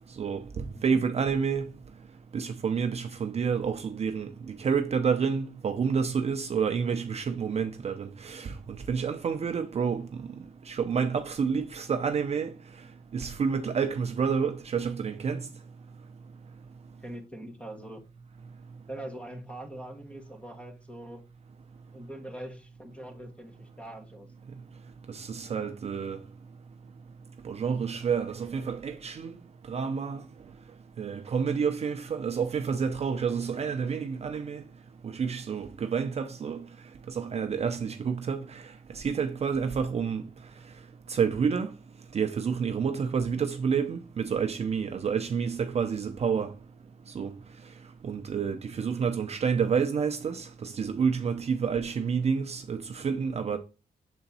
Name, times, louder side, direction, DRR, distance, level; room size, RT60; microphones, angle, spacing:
voice 1, 0.2-1.7 2.3-10.0 10.7-12.5 13.1-15.5 25.1-26.2 27.4-29.3 29.7-30.2 31.0-34.6 35.0-36.6 37.2-38.6 38.9-40.2 41.1-41.7 42.1-46.5 47.1-47.3 48.0-53.6, right 6 dB, 40° right, 0.5 m, -29 dB
voice 2, 17.0-18.0 18.9-21.3 21.9-24.3 38.4-38.5, right 1 dB, 5° left, 1.2 m, -42 dB
7.0 x 3.9 x 4.0 m
wide cardioid pair, 175°, 16 cm